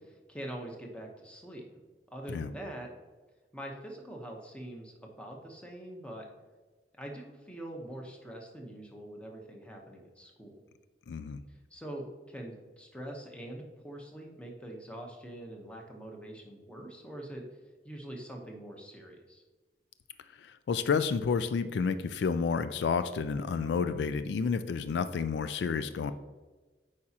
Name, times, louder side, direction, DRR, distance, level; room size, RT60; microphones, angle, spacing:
voice 1, 0.0-1.7 2.1-2.9 3.5-6.3 7.0-10.6 11.7-17.4 17.8-19.4, right 1 dB, 5° left, 1 dB, 0.9 m, -44 dB
voice 2, 11.1-11.4 20.4-26.1, left 5 dB, 75° left, 12 dB, 0.3 m, -30 dB
8.6 x 4.9 x 2.8 m, 1.3 s
head